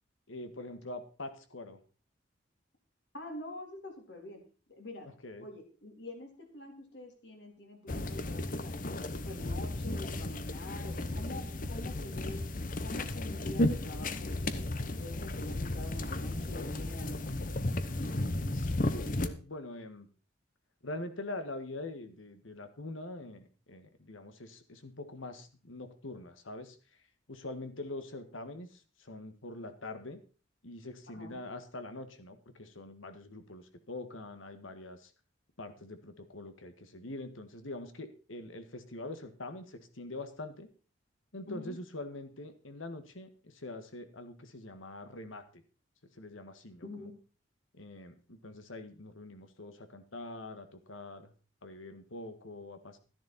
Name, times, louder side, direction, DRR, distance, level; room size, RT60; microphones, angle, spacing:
voice 1, 0.3-1.8 5.0-5.5 18.5-20.1 20.8-27.0 27.3-30.2 30.6-35.1 35.6-40.7 41.3-45.6 46.1-47.1 47.7-51.3 51.6-53.0, left 2 dB, 85° left, 8 dB, 1.8 m, -44 dB
voice 2, 3.1-4.4 4.7-5.1 5.4-8.7 9.1-12.4 12.8-17.3 31.1-31.4 41.5-41.8 46.8-47.1, left 1 dB, 60° left, 3 dB, 3.6 m, -46 dB
sound 1, 7.9-19.3, left 1 dB, 45° left, 0.9 m, -34 dB
13.0 x 11.0 x 4.3 m, 0.36 s
head